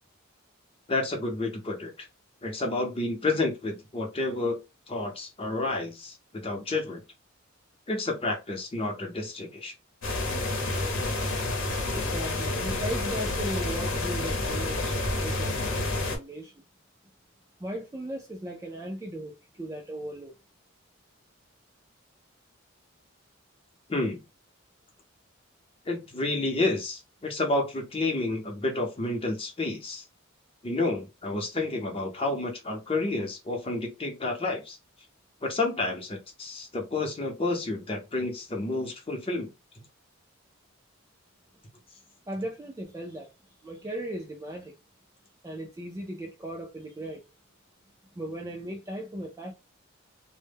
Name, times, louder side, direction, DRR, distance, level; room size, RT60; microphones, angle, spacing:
voice 1, 0.9-2.1 2.4-4.6 4.9-7.0 7.9-9.7 11.4-11.5 23.9-24.2 25.9-30.0 30.6-34.8 35.4-39.5, left 2 dB, 25° left, 0.6 m, -30 dB
sound 1, 10.0-16.2, left 2 dB, 65° left, 0.8 m, -29 dB
voice 2, 11.2-16.5 17.6-20.3 42.3-43.3 43.6-44.8 45.4-47.3 48.1-49.5, right 1 dB, 15° right, 0.3 m, -37 dB
2.1 x 2.0 x 3.3 m
head